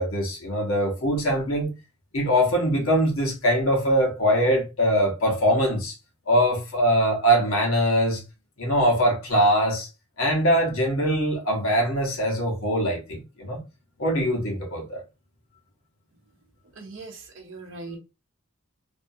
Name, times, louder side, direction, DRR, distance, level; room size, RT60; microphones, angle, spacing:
voice 1, 0.0-1.7 2.1-5.9 6.3-8.2 8.6-9.9 10.2-13.6 14.0-15.0, equal, 75° left, 1.0 m, -22 dB
voice 2, 16.8-18.0, right 3 dB, 60° right, 0.6 m, -40 dB
2.6 x 2.4 x 2.7 m
head